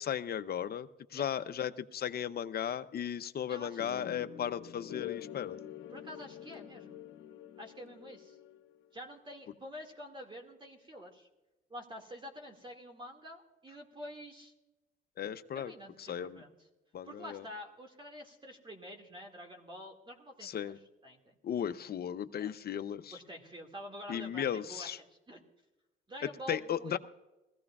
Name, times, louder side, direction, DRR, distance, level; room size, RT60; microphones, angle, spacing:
voice 1, 0.0-5.6 15.2-15.7 16.0-16.4 16.9-17.4 20.4-20.8 21.4-23.2 24.1-25.0 26.5-27.0, left 9 dB, 50° left, 11 dB, 0.7 m, -36 dB
voice 2, 3.5-4.1 5.9-7.0 7.6-8.4 8.9-11.3 11.7-14.5 15.5-16.5 17.0-20.7 21.0-21.4 22.3-22.5 23.1-25.4 26.1-27.0, equal, 25° right, 2 dB, 2.1 m, -48 dB
sound 1, 3.8-8.9, left 11 dB, 80° left, 0.9 m, -46 dB
20.5 x 15.5 x 2.4 m, 1.0 s
cardioid pair, 90°, 20 cm